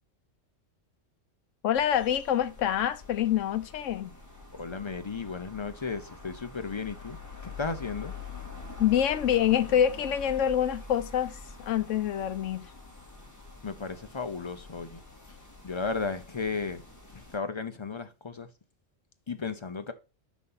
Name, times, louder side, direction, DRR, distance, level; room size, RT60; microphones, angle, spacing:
voice 1, 1.6-4.1 8.8-12.7, left 10 dB, 75° left, 1.1 m, -26 dB
sound 1, 1.7-17.4, left 4 dB, 15° left, 2.3 m, -46 dB
voice 2, 4.5-7.2 7.4-8.1 13.6-15.0 15.6-16.8 17.1-18.5 19.3-19.9, left 4 dB, 45° left, 0.3 m, -34 dB
6.1 x 5.4 x 5.5 m
omnidirectional pair, 1.3 m